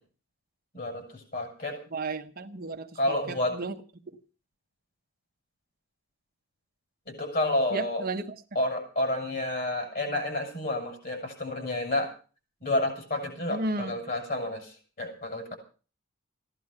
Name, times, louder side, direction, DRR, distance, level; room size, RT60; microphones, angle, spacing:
voice 1, 0.7-1.8 2.9-3.6 7.1-8.0 8.5-12.1 12.6-15.6, left 1 dB, 45° left, 3 dB, 7.9 m, -30 dB
voice 2, 1.9-3.0 3.3-3.7 7.7-8.3 13.5-13.9, right 3 dB, 45° right, 6 dB, 1.2 m, -33 dB
16.5 x 11.0 x 6.9 m, 0.39 s
head